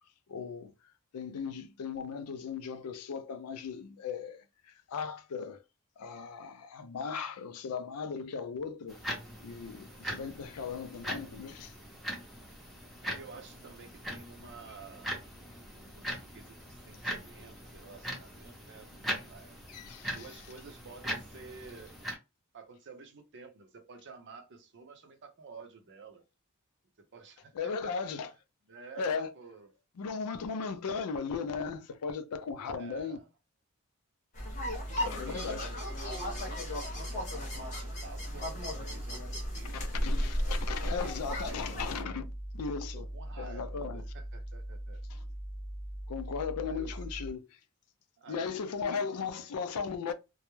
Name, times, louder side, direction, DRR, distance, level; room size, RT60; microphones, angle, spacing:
voice 1, 0.3-0.7 1.1-5.6 6.0-9.0 9.4-11.7 19.1-19.2 19.7-20.3 27.5-28.3 29.0-29.3 30.0-33.2 35.0-35.7 39.7-43.1 43.4-44.0 45.1-45.2 46.1-47.6 48.3-50.1, left 5 dB, 80° left, 0.4 m, -37 dB
sound 1, 8.9-22.1, equal, ahead, 0.6 m, -41 dB
voice 2, 13.0-15.1 15.6-18.9 19.3-19.6 20.1-22.0 22.5-26.2 27.0-27.9 28.7-29.7 32.7-33.3 34.7-35.8 36.1-41.8 42.9-45.0 46.6-47.0 48.2-49.6, right 4 dB, 55° right, 0.6 m, -51 dB
sound 2, 34.3-42.0, equal, 35° left, 0.9 m, -36 dB
sound 3, 34.4-47.3, right 1 dB, 60° left, 0.8 m, -41 dB
2.2 x 2.0 x 3.0 m
head